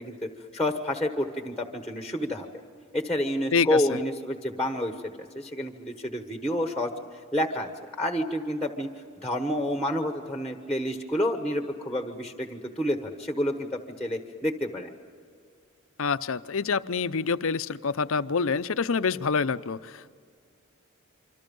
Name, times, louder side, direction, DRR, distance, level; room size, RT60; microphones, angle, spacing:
voice 1, 0.0-2.5 2.9-4.9 5.3-6.9 7.3-7.7 8.0-8.9 9.2-14.9, left 1 dB, 5° left, 5 dB, 1.2 m, -29 dB
voice 2, 3.5-4.0 16.0-20.1, left 5 dB, 75° left, 13 dB, 0.6 m, -27 dB
26.5 x 25.5 x 5.4 m, 2.2 s
head